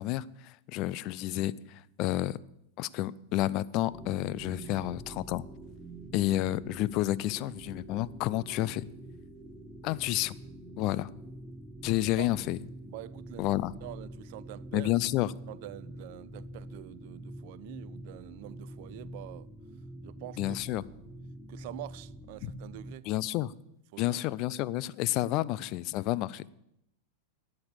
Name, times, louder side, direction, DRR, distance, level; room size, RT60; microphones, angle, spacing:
voice 1, 0.0-2.4 2.8-5.5 6.1-8.8 9.8-10.4 10.8-11.1 11.8-12.6 13.4-13.7 14.7-15.3 20.4-20.8 22.4-22.5 23.1-23.5 24.0-26.5, left 15 dB, 40° left, 0.4 m, -30 dB
sound 1, 3.9-22.9, right 1 dB, 5° right, 1.2 m, -46 dB
voice 2, 12.9-13.5 13.8-14.9 15.5-19.5 20.0-20.6 21.5-23.1 23.9-24.2, right 17 dB, 50° right, 0.4 m, -45 dB
13.0 x 8.7 x 7.3 m
figure-of-eight pair, 90°, 0 cm